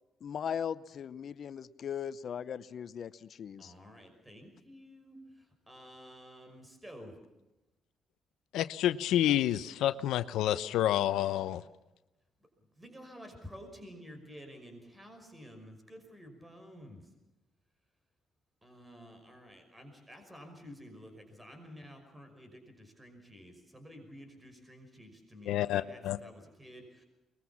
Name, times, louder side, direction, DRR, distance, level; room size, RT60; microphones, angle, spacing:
voice 1, 0.2-3.7, left 8 dB, 60° left, 16 dB, 0.8 m, -38 dB
voice 2, 3.6-7.2 12.8-17.1 18.6-27.0, equal, 10° right, 5 dB, 5.6 m, -51 dB
voice 3, 8.5-11.6 25.5-26.2, left 12 dB, 85° left, 13 dB, 0.7 m, -29 dB
23.5 x 21.0 x 7.2 m, 0.99 s
cardioid pair, 90°, 0 cm